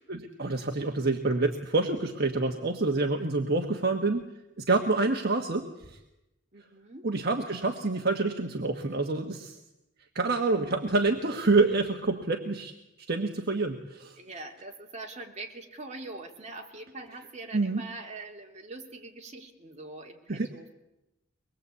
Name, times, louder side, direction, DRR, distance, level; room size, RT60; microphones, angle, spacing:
voice 1, 0.1-4.2 4.6-6.0 7.0-9.6 10.1-12.7 13.1-14.2 17.5-17.8 20.3-20.5, right 3 dB, 55° right, 3 dB, 1.5 m, -27 dB
voice 2, 6.5-7.1 14.2-20.7, right 2 dB, 35° right, 2 dB, 2.9 m, -43 dB
23.5 x 21.0 x 8.3 m, 0.93 s
head